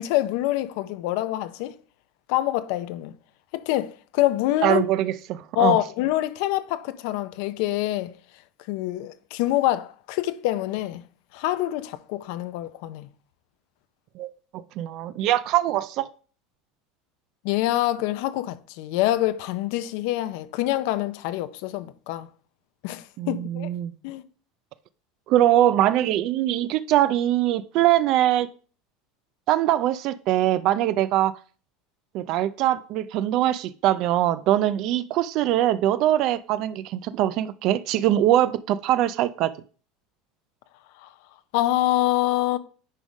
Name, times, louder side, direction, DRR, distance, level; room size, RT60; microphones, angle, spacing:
voice 1, 0.0-1.8 2.3-3.1 3.5-4.8 5.6-8.1 8.7-11.0 11.3-13.1 17.4-22.3 22.8-23.7 24.0-24.2 41.0-41.1 41.5-42.6, left 15 dB, 65° left, 0.6 m, -25 dB
voice 2, 4.6-5.8 14.2-16.1 23.2-23.9 25.3-28.5 29.5-31.4 32.1-39.5, right 13 dB, 50° right, 0.4 m, -22 dB
9.7 x 3.5 x 5.2 m
supercardioid pair, 150°, 0 cm